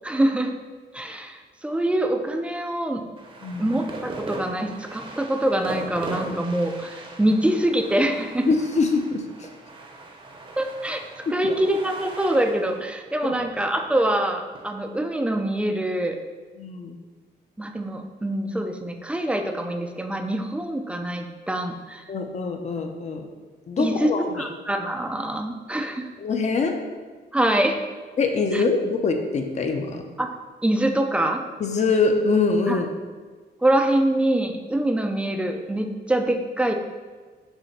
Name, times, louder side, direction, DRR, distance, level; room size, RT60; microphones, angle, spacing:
voice 1, 0.0-0.5 0.9-3.0 3.6-8.5 10.6-11.0 11.3-16.2 17.6-22.0 23.8-24.1 24.4-26.1 27.3-27.8 28.5-28.6 30.2-30.3 30.6-31.4 32.7-32.8 33.6-36.7, right 1 dB, 5° right, 5 dB, 0.4 m, -24 dB
sound 1, 3.2-14.6, right 2 dB, 30° right, 0.8 m, -39 dB
voice 2, 8.4-9.2 11.3-11.6 13.2-13.3 16.6-17.0 22.1-23.3 23.7-24.2 26.2-26.8 28.2-30.0 31.6-32.9, left 4 dB, 40° left, 4 dB, 0.7 m, -24 dB
7.0 x 3.4 x 5.7 m, 1.4 s
wide cardioid pair, 175°, 18 cm